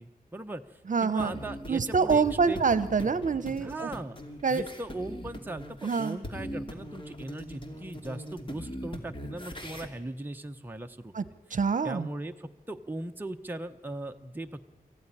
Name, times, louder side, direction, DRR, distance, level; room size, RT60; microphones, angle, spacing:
voice 1, 0.0-2.6 3.6-4.2 4.5-11.1 11.8-14.7, right 1 dB, 10° right, 5 dB, 0.9 m, -39 dB
voice 2, 0.9-1.3 1.7-3.9 4.4-4.6 5.8-6.2 11.1-11.2 11.5-12.1, right 5 dB, 55° right, 14 dB, 1.0 m, -26 dB
sound 1, 1.2-9.9, equal, 30° left, 2.8 m, -41 dB
25.0 x 15.0 x 10.0 m, 1.3 s
wide cardioid pair, 120°, 16 cm